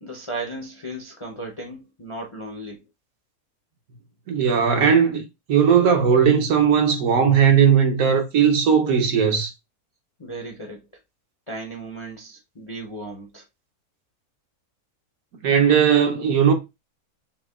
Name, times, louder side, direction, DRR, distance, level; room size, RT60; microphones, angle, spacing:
voice 1, 0.0-2.8 10.2-10.8 11.5-13.4, right 2 dB, 35° left, 0.5 m, -35 dB
voice 2, 4.3-9.5 15.4-16.5, right 7 dB, 70° right, 1.2 m, -18 dB
5.8 x 2.2 x 2.2 m
omnidirectional pair, 1.6 m